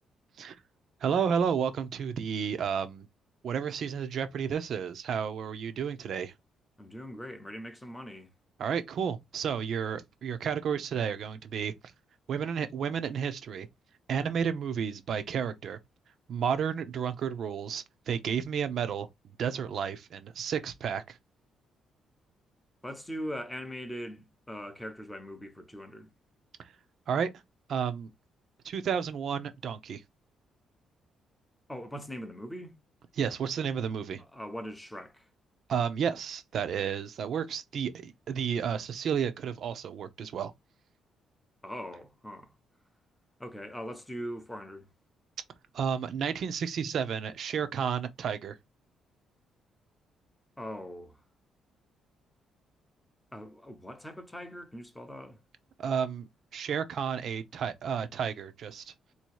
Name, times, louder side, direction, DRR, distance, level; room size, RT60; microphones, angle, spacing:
voice 1, 1.0-3.1 3.4-6.3 8.6-11.7 12.3-13.7 14.1-15.8 16.3-19.1 19.4-21.2 26.6-26.7 27.1-27.3 27.7-28.1 28.6-30.0 33.2-34.2 35.7-40.5 45.7-48.6 55.8-58.9, right 7 dB, 55° right, 0.7 m, -31 dB
voice 2, 6.8-8.3 22.8-26.1 31.7-32.7 34.2-35.2 41.6-42.5 43.4-44.9 50.6-51.2 53.3-55.4, equal, 5° left, 0.7 m, -41 dB
4.1 x 2.8 x 4.6 m
cardioid pair, 150°, 0 cm